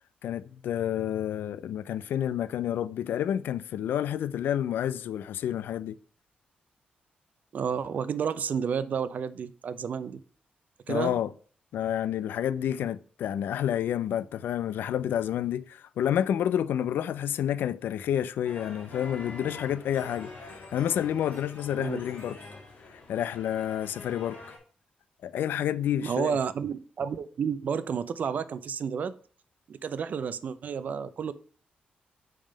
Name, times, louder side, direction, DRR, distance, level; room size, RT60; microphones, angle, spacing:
voice 1, 0.2-6.0 10.9-11.3 11.7-20.3 20.7-22.4 23.1-24.4 25.2-26.4, left 10 dB, 85° left, 0.3 m, -29 dB
voice 2, 7.5-10.2 10.9-11.2 21.8-22.0 26.0-29.1 29.7-31.3, right 7 dB, 55° right, 0.4 m, -31 dB
sound 1, 18.4-24.6, left 3 dB, 50° left, 2.3 m, -45 dB
5.3 x 3.6 x 5.0 m
cardioid pair, 120°, 3 cm